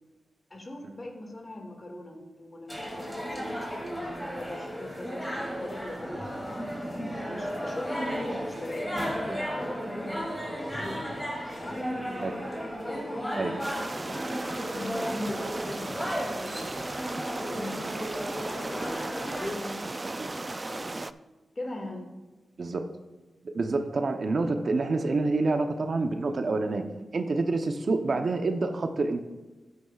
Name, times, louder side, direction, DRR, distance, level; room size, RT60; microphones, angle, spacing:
voice 1, 0.5-6.4 7.3-11.1 11.5-12.3 12.8-19.0 19.3-21.0 21.6-22.1, left 1 dB, 35° left, 3 dB, 2.0 m, -41 dB
sound 1, 2.7-19.5, equal, 10° left, 2.6 m, -34 dB
sound 2, 13.6-21.1, right 2 dB, 30° right, 0.3 m, -36 dB
voice 2, 22.6-22.9 23.4-26.8 27.1-29.2, right 3 dB, 60° right, 6 dB, 0.8 m, -27 dB
12.0 x 9.6 x 2.4 m, 1.1 s
cardioid pair, 65°, 0 cm